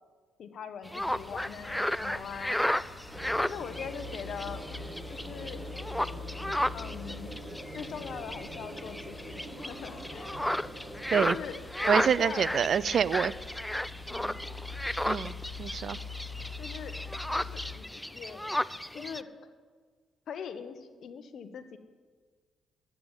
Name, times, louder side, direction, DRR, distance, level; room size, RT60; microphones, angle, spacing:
voice 1, 0.4-2.6 3.4-4.6 5.1-5.6 6.7-7.3 7.7-10.3 11.1-11.6 12.0-12.5 14.1-14.5 16.6-17.0 17.3-18.6 18.9-19.3 20.3-21.8, left 7 dB, 65° left, 10 dB, 1.1 m, -41 dB
sound 1, 0.9-19.2, left 1 dB, 5° left, 0.4 m, -34 dB
sound 2, 1.0-17.7, left 4 dB, 40° left, 4.9 m, -45 dB
sound 3, 3.1-11.4, right 1 dB, 20° right, 2.3 m, -45 dB
voice 2, 11.9-13.3 15.1-16.0, right 7 dB, 55° right, 18 dB, 0.5 m, -27 dB
11.5 x 9.3 x 8.9 m, 1.5 s
cardioid pair, 90°, 0 cm